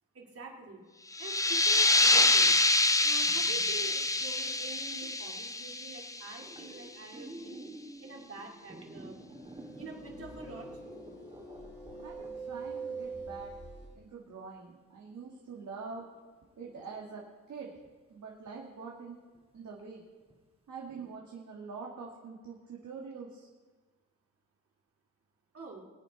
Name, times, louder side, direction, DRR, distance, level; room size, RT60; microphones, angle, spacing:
voice 1, 0.1-0.8 1.2-2.6 3.0-7.6 8.0-9.2 9.7-10.7 25.5-25.8, right 3 dB, 50° right, -1 dB, 2.4 m, -46 dB
sound 1, 1.1-6.5, left 2 dB, 10° left, 0.5 m, -26 dB
sound 2, 2.1-5.1 5.5-5.8 6.1-14.0 14.6-14.7 15.1-17.5 17.8-18.0 18.5-18.6 19.3-19.4 19.8-19.9 20.2-20.3 20.8-21.1, right 1 dB, 20° right, 2.2 m, -51 dB
sound 3, 9.3-14.0, right 4 dB, 35° left, 2.8 m, -43 dB
voice 2, 12.0-13.5 14.0-16.1 16.6-17.7 18.1-19.2 19.5-20.0 20.7-23.5, right 5 dB, 65° right, -2 dB, 1.8 m, -45 dB
21.0 x 8.6 x 4.0 m, 1.4 s
wide cardioid pair, 110°, 31 cm